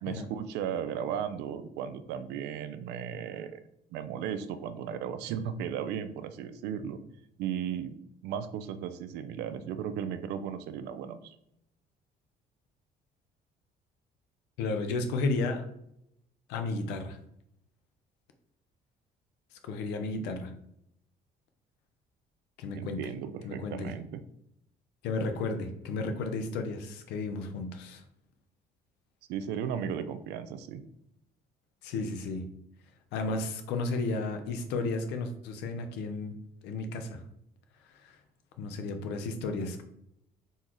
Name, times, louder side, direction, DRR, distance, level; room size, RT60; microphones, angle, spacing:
voice 1, 0.0-3.6 3.9-7.0 7.4-7.9 8.2-11.4 22.7-24.2 29.3-30.8, right 8 dB, 90° right, 11 dB, 0.4 m, -35 dB
voice 2, 14.6-15.6 16.5-17.2 19.6-20.5 22.6-23.0 23.4-23.9 25.0-28.0 31.8-32.5 33.1-36.3 36.6-37.2 37.9-38.1 38.6-39.8, left 3 dB, 90° left, 6 dB, 0.7 m, -33 dB
4.0 x 3.1 x 3.8 m, 0.77 s
cardioid pair, 110°, 17 cm